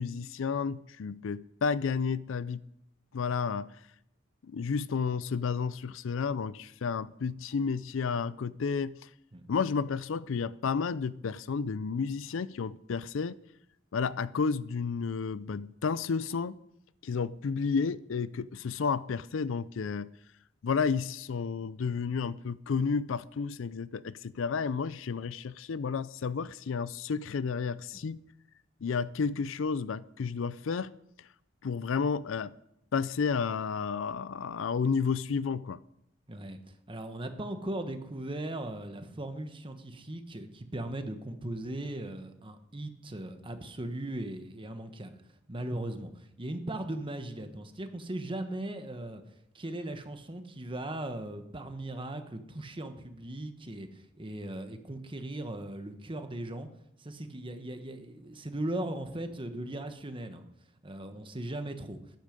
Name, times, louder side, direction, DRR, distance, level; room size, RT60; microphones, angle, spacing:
voice 1, 0.0-2.6 3.1-3.7 4.4-9.1 9.5-13.4 13.9-16.6 17.0-20.1 20.6-28.2 28.8-30.9 31.6-32.5 32.9-35.8, left 5 dB, 70° left, 0.4 m, -31 dB
voice 2, 36.3-36.6 36.9-45.2 45.5-49.2 49.5-56.7 57.0-60.5 60.8-62.0, right 1 dB, 25° right, 1.2 m, -38 dB
14.0 x 10.5 x 5.2 m
head